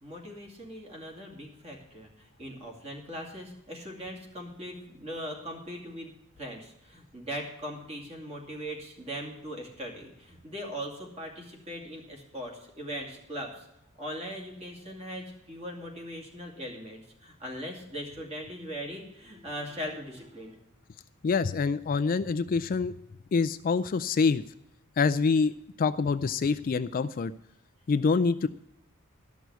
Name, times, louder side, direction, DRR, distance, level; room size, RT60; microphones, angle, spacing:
voice 1, 0.0-13.7 14.0-20.6, equal, 30° right, 0 dB, 2.5 m, -40 dB
voice 2, 21.2-22.9 23.3-24.4 25.0-25.5 25.8-27.3 27.9-28.5, left 4 dB, 40° left, 13 dB, 0.3 m, -25 dB
13.0 x 6.2 x 8.1 m, 0.82 s
head